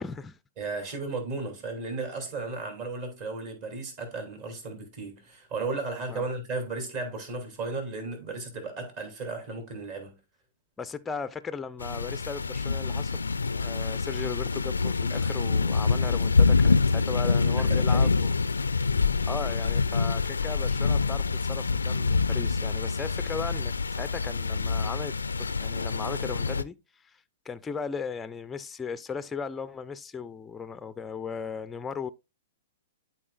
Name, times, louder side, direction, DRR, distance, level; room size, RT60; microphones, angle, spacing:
voice 1, 0.0-0.4 6.1-6.3 10.8-13.2 13.5-18.3 19.2-26.8 27.0-27.2 27.5-32.1, left 5 dB, 15° left, 0.4 m, -37 dB
voice 2, 0.6-10.2 17.1-18.1, right 3 dB, 45° right, 3.0 m, -35 dB
sound 1, 11.8-26.6, left 4 dB, 80° left, 0.3 m, -26 dB
12.0 x 4.4 x 2.5 m
figure-of-eight pair, 110°, 0 cm